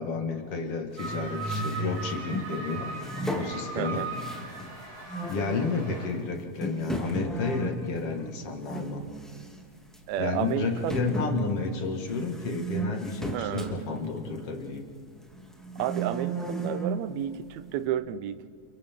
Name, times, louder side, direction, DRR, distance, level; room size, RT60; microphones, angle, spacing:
voice 1, 0.0-2.9 3.3-4.1 5.3-9.0 10.2-14.9, left 4 dB, 50° left, 3 dB, 2.5 m, -31 dB
sound 1, 1.0-2.5 3.0-4.7 5.1-5.5 6.1-6.2 6.6-8.9 9.2-9.6 9.9-10.0 10.9-14.9 15.4-17.0, right 2 dB, ahead, 1.5 m, -34 dB
sound 2, 1.0-6.1, right 3 dB, 40° right, 7.0 m, -38 dB
voice 2, 3.8-4.1 10.1-11.0 13.3-13.8 15.8-18.5, right 11 dB, 75° right, 13 dB, 1.8 m, -31 dB
29.5 x 29.5 x 3.7 m, 2.2 s
omnidirectional pair, 3.6 m